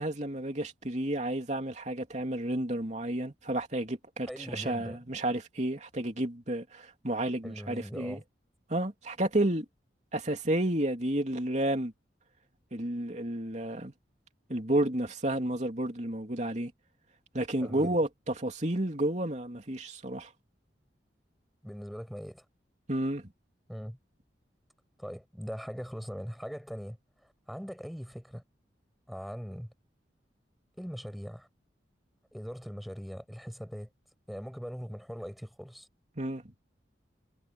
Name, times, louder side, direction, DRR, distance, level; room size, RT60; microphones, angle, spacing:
voice 1, 0.0-8.2 8.7-9.6 10.1-11.9 12.7-13.9 14.5-16.7 17.3-20.3 22.9-23.3 36.2-36.5, right 1 dB, 40° right, 3.2 m, -31 dB
voice 2, 4.3-5.0 7.4-8.2 17.6-18.0 21.6-22.4 23.7-24.0 25.0-27.0 27.5-28.4 29.1-29.7 30.8-31.5 32.3-33.9 34.3-35.9, equal, ahead, 6.6 m, -40 dB
head